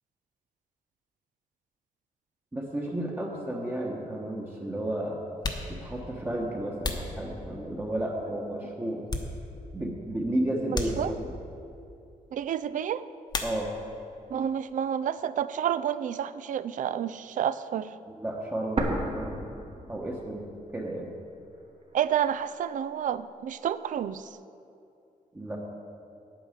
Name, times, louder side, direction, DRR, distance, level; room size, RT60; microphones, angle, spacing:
voice 1, 2.5-5.2 5.7-9.0 9.7-11.3 13.4-13.7 18.1-19.4 19.9-20.5 20.7-21.1 25.3-25.6, right 1 dB, 15° right, -2 dB, 1.1 m, -32 dB
sound 1, 5.4-7.9 8.4-9.8 10.1-10.2 10.7-11.5 13.3-14.1 14.3-15.0 15.3-17.5, left 3 dB, 30° left, 1.0 m, -37 dB
voice 2, 10.7-11.2 12.3-13.0 14.3-17.9 21.9-24.3, right 9 dB, 65° right, 15 dB, 0.4 m, -30 dB
sound 2, 18.8-20.7 21.0-21.1 21.8-22.8, right 2 dB, 45° right, 1.3 m, -33 dB
9.5 x 8.9 x 6.5 m, 2.7 s
wide cardioid pair, 150°, 14 cm